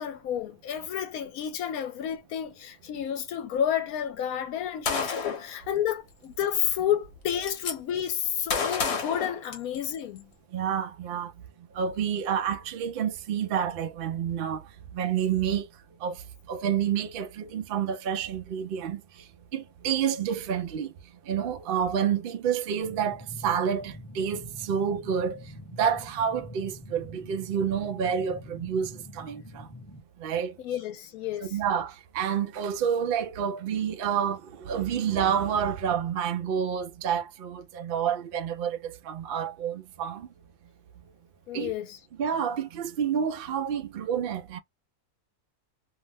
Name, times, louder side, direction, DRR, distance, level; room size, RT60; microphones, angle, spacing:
voice 1, 0.0-10.3 30.6-31.5 41.5-42.0, left 9 dB, 75° left, 1.0 m, -30 dB
Gunshot gunfire, 4.8-5.5 6.6-6.7 7.0-7.7 8.5-10.0, left 5 dB, 50° left, 1.0 m, -30 dB
voice 2, 10.5-11.3 11.7-14.7 14.9-15.7 16.0-16.2 16.5-19.0 19.5-20.9 21.3-25.4 25.8-29.7 30.2-30.6 31.4-40.3 41.5-41.7 42.2-44.6, right 8 dB, 85° right, 0.4 m, -29 dB
sound 1, 22.8-30.0, equal, 15° left, 0.6 m, -45 dB
2.7 x 2.1 x 3.3 m
omnidirectional pair, 1.6 m